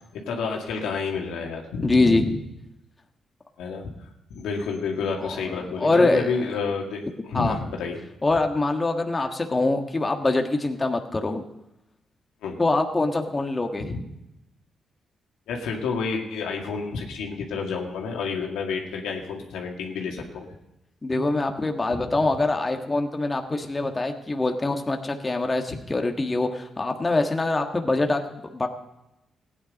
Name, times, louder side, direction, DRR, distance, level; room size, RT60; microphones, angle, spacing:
voice 1, 0.1-2.2 3.6-8.0 9.2-9.3 12.4-12.6 13.8-14.0 15.5-20.5 21.9-22.1 25.7-25.8, left 5 dB, 90° left, 1 dB, 2.0 m, -30 dB
voice 2, 1.8-2.4 5.2-6.3 7.3-7.5 8.2-11.4 12.6-13.9 21.0-28.7, left 2 dB, 25° left, 4 dB, 1.5 m, -24 dB
15.5 x 9.9 x 5.2 m, 0.91 s
supercardioid pair, 60°, 0 cm